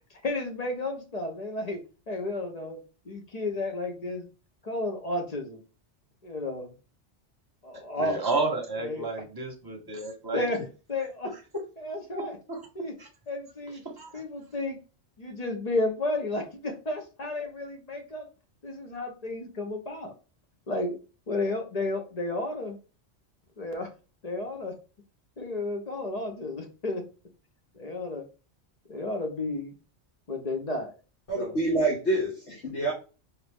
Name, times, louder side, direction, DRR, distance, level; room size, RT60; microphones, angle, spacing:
voice 1, 0.2-1.8 2.1-2.8 3.1-4.3 4.6-5.6 6.2-6.7 7.6-9.1 10.3-10.6 10.9-11.3 11.8-12.4 12.8-12.9 13.3-13.8 14.1-14.8 15.2-18.3 18.6-20.1 20.7-21.0 21.3-22.8 23.6-23.9 24.2-24.7 25.4-27.0 27.8-28.2 28.9-29.7 30.3-30.9 31.3-31.6, left 2 dB, 40° left, 4 dB, 0.8 m, -32 dB
voice 2, 8.0-10.5 12.2-12.7 13.0-13.1 13.8-14.2, right 3 dB, 20° right, 1 dB, 1.0 m, -32 dB
voice 3, 31.3-32.9, right 2 dB, 70° left, -3 dB, 1.5 m, -27 dB
4.4 x 2.6 x 3.4 m, 0.34 s
omnidirectional pair, 1.2 m